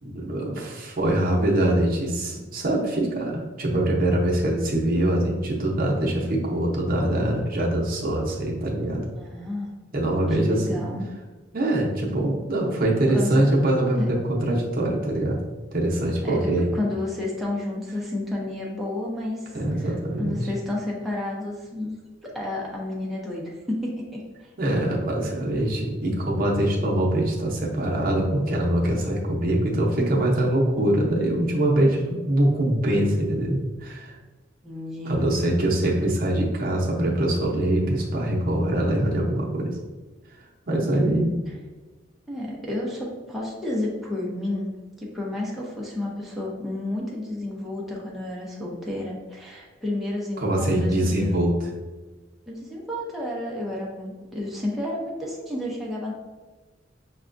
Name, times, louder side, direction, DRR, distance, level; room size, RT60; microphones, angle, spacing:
voice 1, 0.0-9.0 9.9-10.8 11.5-15.4 15.7-16.7 19.5-20.4 24.6-34.2 35.0-39.8 40.7-41.3 50.4-51.7, right 1 dB, 50° right, -2 dB, 0.7 m, -23 dB
voice 2, 9.2-9.7 10.3-11.1 13.1-13.5 14.0-14.1 16.2-22.0 22.2-24.0 24.4-24.5 34.6-35.2 41.0-41.3 42.3-44.7 45.0-51.3 52.5-56.1, left 1 dB, ahead, -5 dB, 0.6 m, -31 dB
5.9 x 2.3 x 2.5 m, 1.3 s
head